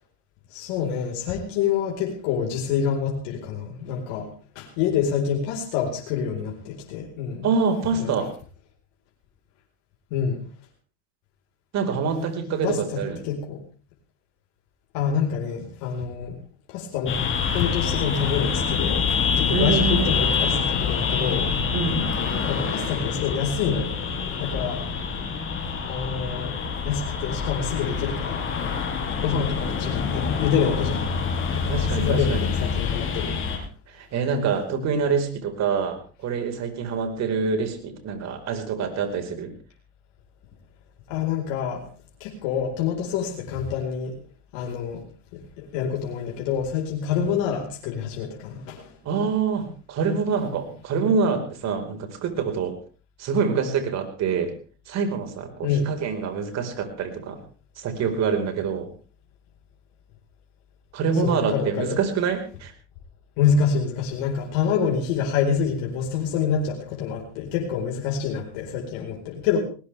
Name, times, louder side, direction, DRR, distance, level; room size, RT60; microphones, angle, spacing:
voice 1, 0.5-7.5 7.9-8.3 10.1-10.5 12.6-13.6 14.9-16.4 16.7-17.2 17.5-19.0 19.3-21.6 22.5-24.0 24.4-24.9 25.9-28.4 29.2-31.1 31.5-33.3 41.1-41.9 42.2-44.2 44.5-45.1 45.3-48.9 55.6-55.9 61.2-62.0 63.4-69.6, left 7 dB, 65° left, 0 dB, 4.6 m, -27 dB
voice 2, 7.4-8.3 11.7-13.2 19.5-20.1 21.7-22.1 31.5-32.5 33.9-39.5 49.0-52.7 53.2-54.5 54.9-57.4 57.8-58.9 60.9-62.7, right 5 dB, 45° right, 5 dB, 4.7 m, -26 dB
sound 1, 17.1-33.6, left 6 dB, 35° left, 5.9 m, -26 dB
19.5 x 19.5 x 3.4 m, 0.38 s
supercardioid pair, 105°, 36 cm